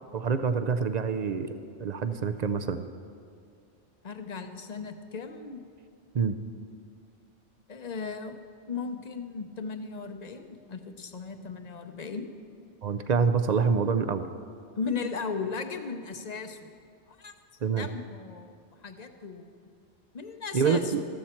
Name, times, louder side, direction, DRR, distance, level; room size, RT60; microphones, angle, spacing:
voice 1, 0.1-1.5 1.8-2.8 6.1-6.3 12.8-14.3 17.6-17.9 20.5-21.0, right 5 dB, 50° right, 10 dB, 0.5 m, -26 dB
voice 2, 4.0-5.6 7.7-8.4 8.7-12.3 14.8-16.7 17.1-17.3 17.6-18.6 18.8-19.5 20.1-21.0, left 5 dB, 40° left, 7 dB, 0.8 m, -36 dB
14.0 x 13.5 x 4.4 m, 2.3 s
omnidirectional pair, 1.2 m